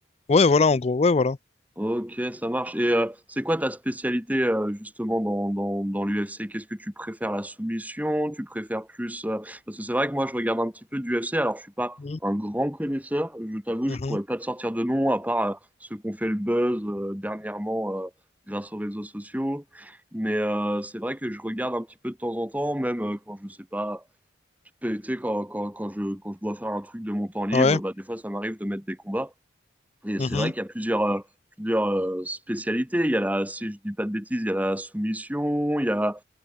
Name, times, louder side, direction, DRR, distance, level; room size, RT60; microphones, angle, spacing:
voice 1, 0.3-1.4 12.0-12.2 13.9-14.2 27.5-27.8 30.2-30.5, left 4 dB, 35° left, 0.4 m, -21 dB
voice 2, 1.8-18.1 18.5-24.0 24.8-29.3 30.0-31.2 31.6-36.2, equal, 10° right, 3.0 m, -28 dB
head